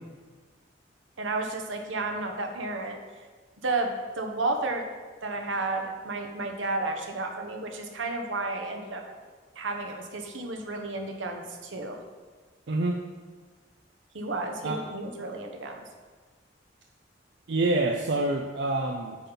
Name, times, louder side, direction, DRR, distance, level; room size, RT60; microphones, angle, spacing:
voice 1, 1.2-3.0 3.6-4.9 5.2-9.0 9.5-12.0 14.1-15.8, right 2 dB, 85° right, 4 dB, 1.0 m, -32 dB
voice 2, 12.7-13.0 14.6-14.8 17.5-19.2, right 2 dB, 65° right, 3 dB, 0.5 m, -26 dB
8.4 x 5.4 x 4.0 m, 1.5 s
head